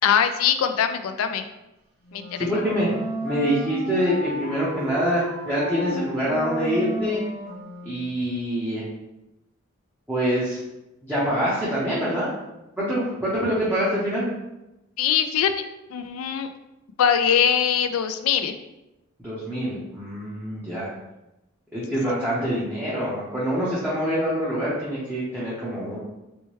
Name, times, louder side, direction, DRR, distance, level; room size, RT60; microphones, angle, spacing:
voice 1, 0.0-1.5 2.1-2.4 15.0-15.5 15.9-16.5 17.0-18.6 22.1-22.2, left 8 dB, 85° left, 9 dB, 0.3 m, -22 dB
Wind instrument woodwind instrument, 2.0-8.1, equal, 50° right, 1.2 m, -32 dB
voice 2, 2.4-2.9 3.2-7.2 7.8-8.8 10.1-10.6 11.0-12.3 12.8-14.3 19.2-20.9 21.7-26.0, equal, 5° right, -10 dB, 0.8 m, -25 dB
4.3 x 2.2 x 3.1 m, 0.94 s
head